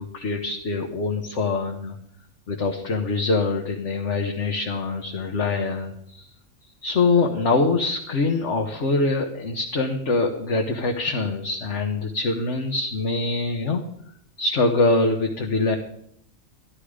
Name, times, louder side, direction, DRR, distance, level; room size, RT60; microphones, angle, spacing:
voice 1, 0.0-1.9 2.5-6.3 6.8-13.8 14.4-15.8, left 3 dB, 60° left, 2 dB, 1.5 m, -24 dB
13.5 x 12.0 x 5.0 m, 0.70 s
omnidirectional pair, 1.4 m